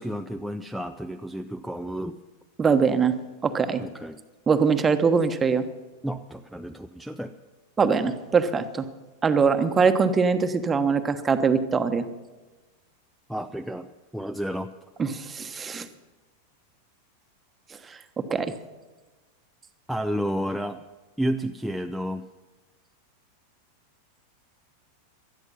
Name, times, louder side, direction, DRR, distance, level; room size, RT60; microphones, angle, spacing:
voice 1, 0.0-2.2 3.8-4.2 6.0-7.3 13.3-13.9 14.1-14.7 19.9-20.8 21.2-22.3, equal, ahead, 4 dB, 0.6 m, -31 dB
voice 2, 2.6-3.1 3.4-3.8 4.5-5.6 7.8-8.9 9.2-12.0 15.0-15.9 17.9-18.0 18.3-18.5, right 5 dB, 20° right, 8 dB, 1.2 m, -22 dB
19.0 x 13.0 x 5.6 m, 1.2 s
figure-of-eight pair, 90°, 0 cm